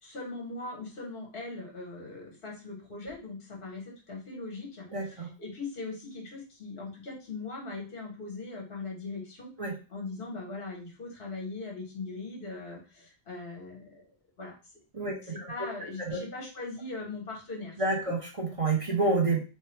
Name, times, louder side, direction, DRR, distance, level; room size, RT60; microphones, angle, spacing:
voice 1, 0.0-9.5 9.9-14.0 14.4-14.5 15.0-17.8 18.0-18.1, left 3 dB, 65° left, -1 dB, 1.5 m, -40 dB
voice 2, 4.9-5.3 9.6-9.7 14.9-15.5 16.0-16.2 17.8-19.4, right 3 dB, 35° right, -1 dB, 1.0 m, -28 dB
3.3 x 2.4 x 4.3 m, 0.33 s
omnidirectional pair, 1.1 m